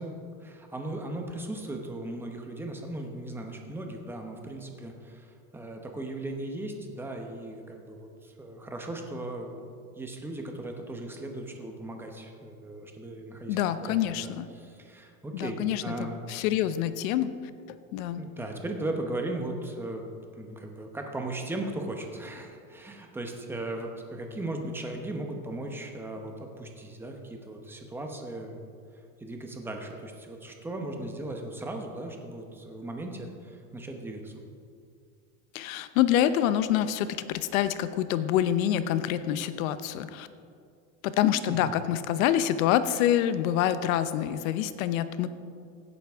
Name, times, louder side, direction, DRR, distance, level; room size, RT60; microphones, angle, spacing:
voice 1, 0.0-9.7 10.0-16.2 18.2-20.0 20.3-28.6 29.2-34.4 41.5-41.7, right 1 dB, 5° right, 3 dB, 0.8 m, -37 dB
voice 2, 13.5-14.5 15.3-17.3 17.9-18.2 35.5-40.3 41.0-45.3, left 11 dB, 90° left, 12 dB, 0.8 m, -26 dB
16.5 x 9.5 x 3.5 m, 2.3 s
cardioid pair, 165°, 40 cm